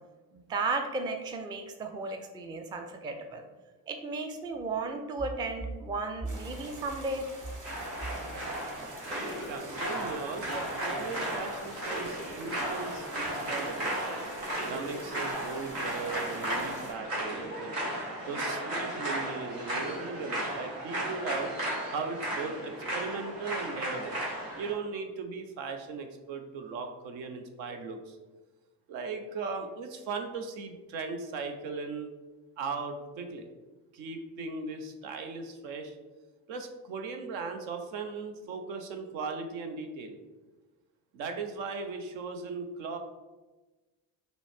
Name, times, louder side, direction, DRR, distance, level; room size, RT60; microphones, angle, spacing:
voice 1, 0.3-3.5 3.9-7.3, right 3 dB, 10° right, 5 dB, 0.3 m, -34 dB
sound 1, 6.3-16.9, right 1 dB, 40° right, 1.2 m, -47 dB
sound 2, 7.6-24.7, right 1 dB, 80° right, 1.4 m, -35 dB
voice 2, 9.5-14.1 14.6-17.8 18.3-21.5 21.9-24.2 24.5-28.2 28.9-32.1 32.6-33.5 33.9-36.0 36.5-40.2 41.1-43.0, right 4 dB, 65° right, 5 dB, 0.7 m, -38 dB
6.0 x 2.1 x 3.4 m, 1.2 s
hypercardioid pair, 45°, 50 cm